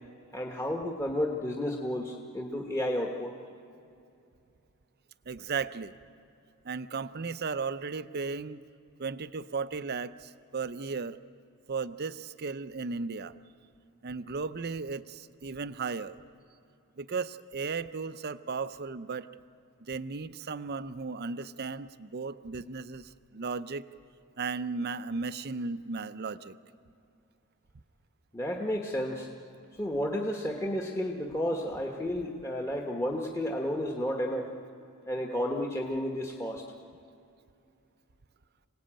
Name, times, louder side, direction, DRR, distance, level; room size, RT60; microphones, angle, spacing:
voice 1, 0.3-3.3 28.3-29.3 29.8-34.5 35.1-36.6, left 1 dB, 15° left, 0 dB, 1.2 m, -32 dB
voice 2, 5.3-5.9 6.6-8.6 9.0-11.2 11.7-13.3 14.0-16.2 17.0-19.3 19.8-23.9 24.4-26.5, right 4 dB, 45° right, 13 dB, 0.6 m, -35 dB
26.5 x 18.5 x 8.9 m, 2.6 s
head